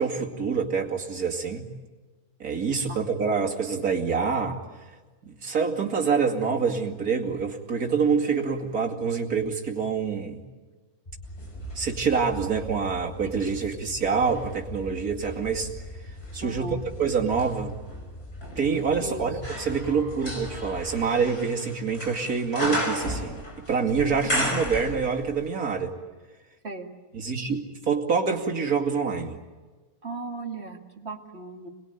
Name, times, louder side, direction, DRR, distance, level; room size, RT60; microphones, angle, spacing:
voice 1, 0.0-1.7 2.4-4.6 5.2-10.4 11.8-15.7 16.3-17.8 18.6-25.9 27.1-29.4, right 5 dB, 75° right, 1 dB, 2.9 m, -26 dB
voice 2, 2.7-3.0 13.4-13.9 16.4-16.8 19.0-19.4 26.6-26.9 30.0-31.7, right 2 dB, 45° right, 3 dB, 2.3 m, -37 dB
sound 1, 11.1-21.0, left 1 dB, 25° left, 1.1 m, -41 dB
sound 2, 11.4-13.6 14.1-25.4 25.7-25.8, equal, 80° left, 6.1 m, -35 dB
27.0 x 20.5 x 9.3 m, 1.3 s
omnidirectional pair, 1.6 m